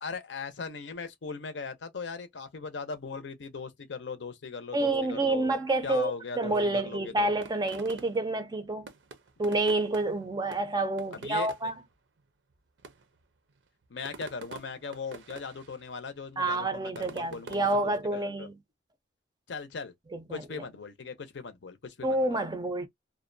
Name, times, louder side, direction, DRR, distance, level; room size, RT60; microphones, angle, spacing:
voice 1, 0.0-5.5 5.8-7.3 11.1-11.5 13.9-18.5 19.5-19.9 20.3-22.4, left 4 dB, 70° left, 0.6 m, -39 dB
voice 2, 4.7-8.9 9.4-11.7 16.4-18.5 20.1-20.4 22.0-22.9, right 2 dB, 20° right, 0.4 m, -28 dB
sound 1, 7.4-8.4 8.8-10.2 10.5-11.8 12.5-12.6 12.8-13.2 13.8-15.8 16.1-17.8, right 4 dB, 75° right, 0.5 m, -47 dB
2.5 x 2.1 x 2.5 m
head